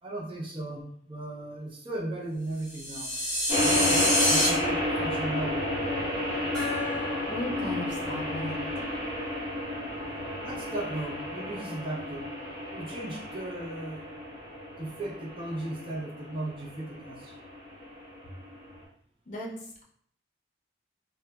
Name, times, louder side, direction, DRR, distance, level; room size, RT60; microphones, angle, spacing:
voice 1, 0.0-3.2 3.6-5.6 10.4-12.3 12.7-14.1 14.8-17.3, right 2 dB, 30° right, -3 dB, 0.5 m, -36 dB
sound 1, 2.7-4.5, left 1 dB, 15° left, 1.1 m, -26 dB
sound 2, 3.5-18.8, left 1 dB, 10° right, 1.5 m, -32 dB
Gong, 6.5-9.8, left 4 dB, 45° right, 0.9 m, -41 dB
voice 2, 7.3-8.6 19.3-19.8, left 1 dB, 40° left, -3 dB, 0.5 m, -36 dB
2.8 x 2.1 x 2.3 m, 0.63 s
head